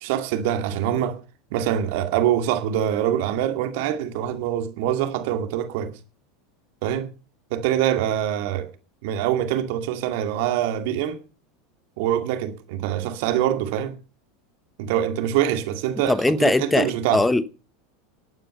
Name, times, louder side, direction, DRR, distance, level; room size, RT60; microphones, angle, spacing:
voice 1, 0.0-1.2 1.5-5.9 6.8-7.1 7.5-8.7 9.0-11.2 12.0-13.9 14.8-17.3, right 11 dB, 60° right, 2.2 m, -24 dB
voice 2, 16.1-17.5, left 2 dB, 10° left, 1.1 m, -21 dB
18.5 x 9.1 x 5.6 m
figure-of-eight pair, 80°, 0 cm